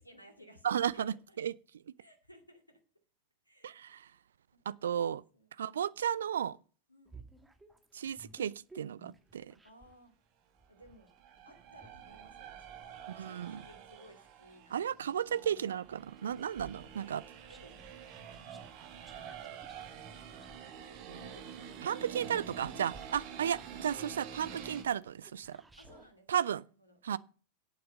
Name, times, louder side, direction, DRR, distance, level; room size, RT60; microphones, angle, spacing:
voice 1, 0.0-1.4 2.0-2.8 3.4-4.2 4.7-5.9 6.9-7.3 9.6-10.1 10.7-11.2 11.4-15.6 17.0-17.2 17.5-17.9 19.1-22.0 22.4-23.2 25.8-27.0, equal, 85° left, 2.2 m, -60 dB
voice 2, 0.6-1.5 3.6-4.1 4.7-5.2 5.6-6.6 7.9-9.5 13.1-13.6 14.7-17.2 21.8-25.6 26.3-26.6 27.0-27.2, right 9 dB, 65° right, 0.4 m, -34 dB
sound 1, 7.1-10.0 10.6-14.9 15.4-26.1, right 3 dB, 10° right, 1.7 m, -59 dB
sound 2, 10.8-24.8, right 8 dB, 45° right, 2.1 m, -48 dB
10.5 x 8.7 x 5.3 m
figure-of-eight pair, 90°, 0 cm